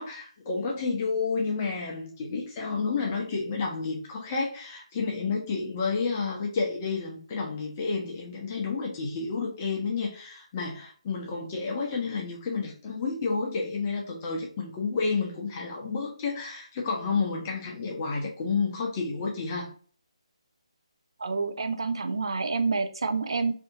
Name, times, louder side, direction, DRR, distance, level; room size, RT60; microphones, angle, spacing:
voice 1, 0.0-19.7, left 4 dB, 20° left, -1 dB, 0.6 m, -30 dB
voice 2, 21.2-23.5, right 4 dB, 55° right, 7 dB, 0.5 m, -28 dB
2.7 x 2.6 x 3.5 m, 0.43 s
figure-of-eight pair, 145°, 3 cm